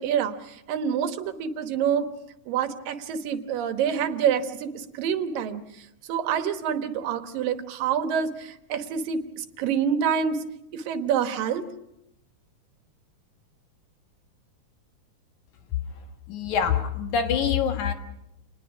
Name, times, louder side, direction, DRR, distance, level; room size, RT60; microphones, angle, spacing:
voice 1, 0.0-2.1 2.5-10.4 10.7-11.6, right 8 dB, 85° right, 8 dB, 3.0 m, -27 dB
voice 2, 15.9-17.9, left 7 dB, 65° left, 6 dB, 2.8 m, -26 dB
28.5 x 20.0 x 6.1 m, 0.85 s
omnidirectional pair, 3.9 m